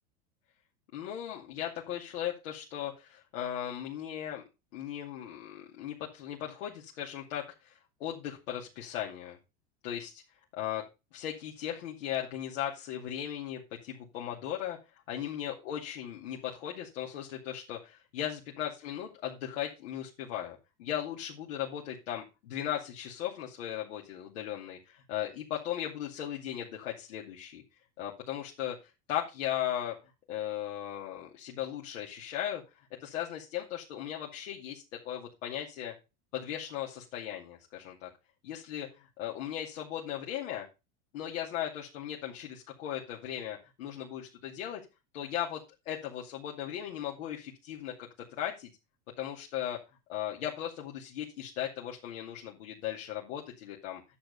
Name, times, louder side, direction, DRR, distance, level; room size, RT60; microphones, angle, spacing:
voice 1, 0.9-4.4 4.7-9.4 9.8-10.2 10.6-10.8 11.1-14.8 15.1-27.6 28.0-30.0 30.3-35.9 36.3-38.1 38.4-40.7 41.1-44.8 45.1-48.7 49.2-49.8 50.1-54.0, left 11 dB, 75° left, -2 dB, 2.6 m, -37 dB
10.0 x 7.0 x 5.3 m, 0.27 s
hypercardioid pair, 105°, 38 cm